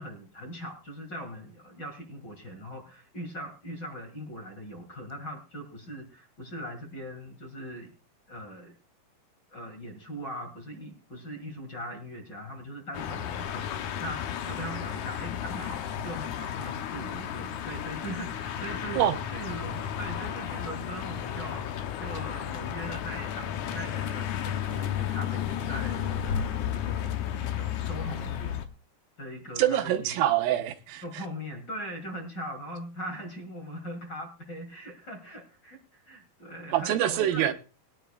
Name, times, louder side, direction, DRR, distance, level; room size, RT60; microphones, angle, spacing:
voice 1, 0.0-7.9 8.3-8.7 9.5-19.0 19.3-21.7 22.0-28.6 29.2-30.1 31.0-37.5, equal, 35° left, 2.1 m, -40 dB
sound 1, 12.9-28.7, left 9 dB, 70° left, 2.0 m, -33 dB
voice 2, 29.6-31.0 36.7-37.5, right 12 dB, 90° right, 2.7 m, -25 dB
21.0 x 10.5 x 2.4 m
omnidirectional pair, 4.2 m